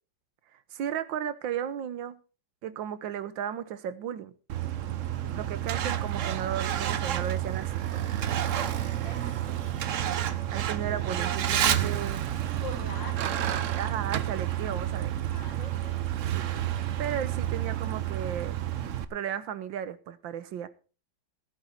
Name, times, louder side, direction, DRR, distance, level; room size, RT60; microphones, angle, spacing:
voice 1, 0.7-2.2 2.6-4.3 5.3-8.1 10.5-12.3 13.8-15.1 17.0-18.6 19.1-20.7, right 9 dB, 85° right, 1.7 m, -35 dB
Truck, 4.5-19.0, right 11 dB, 55° right, 0.9 m, -30 dB
voice 2, 8.5-9.4 12.6-13.7 15.3-16.0, left 3 dB, 75° left, 4.1 m, -44 dB
15.5 x 9.5 x 4.4 m
omnidirectional pair, 2.0 m